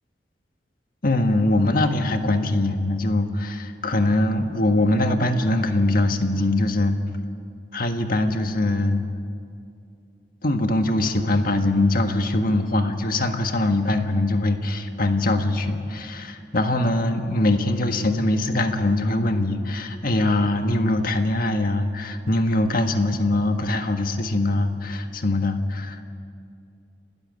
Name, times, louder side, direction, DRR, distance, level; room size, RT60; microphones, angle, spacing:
voice 1, 1.0-7.0 7.7-9.0 10.4-26.0, left 2 dB, 55° left, 6 dB, 1.6 m, -22 dB
30.0 x 13.0 x 9.7 m, 2.4 s
head